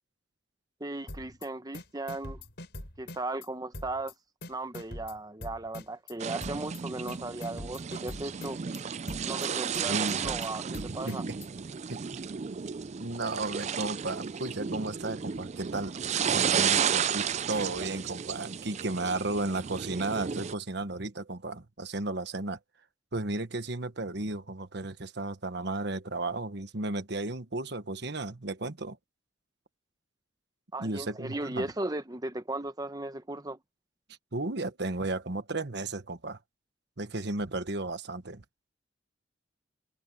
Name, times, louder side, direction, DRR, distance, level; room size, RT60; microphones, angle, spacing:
voice 1, 0.8-2.4 3.0-4.1 4.5-8.6 9.3-11.2 30.7-33.6, right 2 dB, 20° right, 1.0 m, -36 dB
sound 1, 1.1-1.5 1.7-3.5 3.7-4.1 4.4-6.1 6.4-6.8 7.1-8.8 9.1-9.5 9.7-11.5, left 1 dB, 60° left, 6.2 m, -43 dB
sound 2, 6.2-20.5, right 7 dB, 35° right, 0.4 m, -33 dB
voice 2, 9.9-10.3 10.9-11.4 11.9-12.2 13.0-15.9 16.3-22.6 23.1-29.0 30.8-31.7 34.3-36.4 37.0-38.4, right 2 dB, 60° right, 1.4 m, -34 dB
head